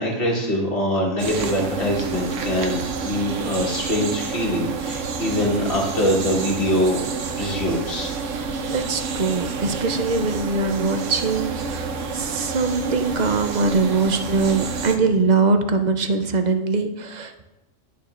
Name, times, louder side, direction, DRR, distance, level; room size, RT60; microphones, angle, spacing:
voice 1, 0.0-7.0 7.4-8.1, equal, 50° left, -2 dB, 1.8 m, -23 dB
sound 1, 1.2-15.0, right 5 dB, 75° right, 1.1 m, -29 dB
voice 2, 8.3-17.4, right 4 dB, 50° right, 7 dB, 0.5 m, -22 dB
11.0 x 6.8 x 2.5 m, 0.98 s
omnidirectional pair, 1.3 m